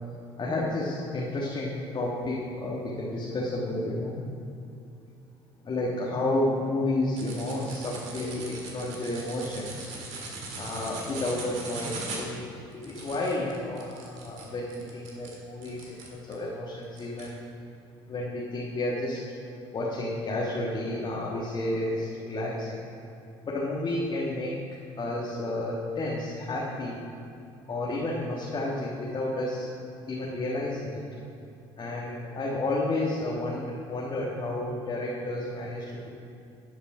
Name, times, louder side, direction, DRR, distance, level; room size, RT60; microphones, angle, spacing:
voice 1, 0.4-4.2 5.6-9.9 10.6-12.4 12.8-17.4 18.1-19.2 19.7-22.8 23.4-24.6 25.0-27.0 27.7-29.7 30.1-31.0 31.8-36.1, left 2 dB, 40° left, -5 dB, 1.5 m, -31 dB
sound 1, 7.2-16.4 16.9-17.3, right 3 dB, 65° right, 1.9 m, -40 dB
10.5 x 5.1 x 5.5 m, 2.6 s
hypercardioid pair, 65°, 13 cm